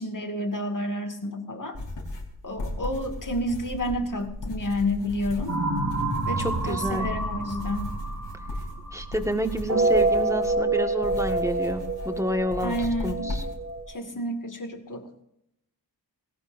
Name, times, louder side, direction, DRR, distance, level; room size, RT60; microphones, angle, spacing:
voice 1, 0.0-1.8 2.4-5.5 6.3-7.9 12.6-13.4 13.9-15.1, left 1 dB, 50° left, 4 dB, 2.4 m, -30 dB
sound 1, 1.7-13.8, left 1 dB, 90° left, 3.9 m, -37 dB
sound 2, 5.5-9.1 9.5-13.9, right 2 dB, 50° right, 4.9 m, -27 dB
voice 2, 6.4-7.1 8.9-13.4, equal, 5° right, 5 dB, 1.8 m, -29 dB
19.5 x 17.5 x 2.7 m, 0.80 s
wide cardioid pair, 65°, 41 cm